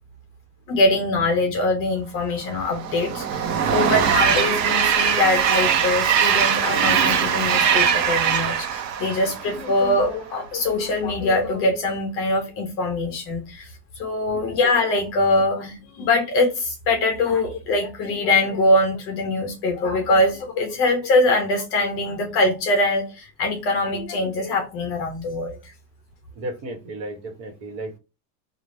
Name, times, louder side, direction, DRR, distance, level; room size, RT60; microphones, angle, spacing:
voice 1, 0.7-13.7 14.0-25.6, left 2 dB, 30° left, 0.5 m, -23 dB
Train, 2.5-10.0, right 7 dB, 80° right, 0.9 m, -21 dB
voice 2, 26.3-28.0, right 1 dB, 55° right, 1.3 m, -34 dB
3.3 x 2.4 x 4.0 m
supercardioid pair, 165°, 48 cm